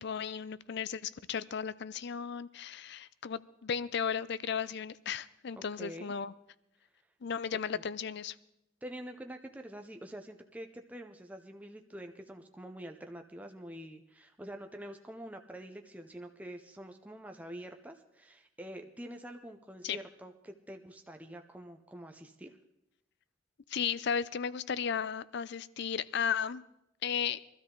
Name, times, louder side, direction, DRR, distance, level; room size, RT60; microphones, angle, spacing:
voice 1, 0.0-6.3 7.2-8.3 19.8-20.0 23.7-26.6 27.0-27.4, left 7 dB, 55° left, 18 dB, 0.5 m, -35 dB
voice 2, 5.5-6.1 7.7-7.8 8.8-22.6, right 1 dB, 5° right, 5 dB, 0.6 m, -46 dB
22.0 x 13.0 x 3.8 m, 0.85 s
head